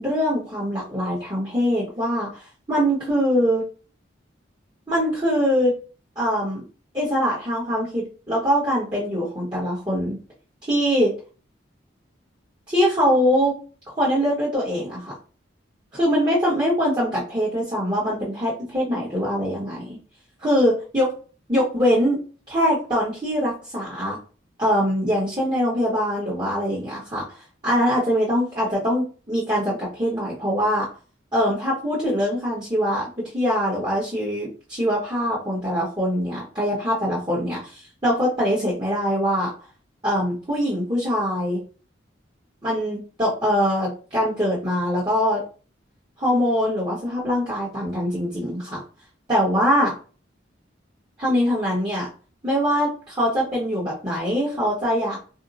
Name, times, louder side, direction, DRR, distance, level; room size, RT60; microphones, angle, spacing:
voice 1, 0.0-3.6 4.9-5.8 6.2-6.6 6.9-10.2 10.7-11.1 12.7-13.5 14.0-15.1 15.9-20.0 20.4-21.1 21.5-22.2 22.5-24.2 24.6-27.2 27.6-30.9 31.3-37.6 38.0-39.5 40.0-41.6 42.6-45.4 46.2-48.8 49.3-49.9 51.2-52.1 52.4-55.2, equal, 20° right, -9 dB, 1.0 m, -23 dB
2.7 x 2.1 x 3.9 m, 0.37 s
head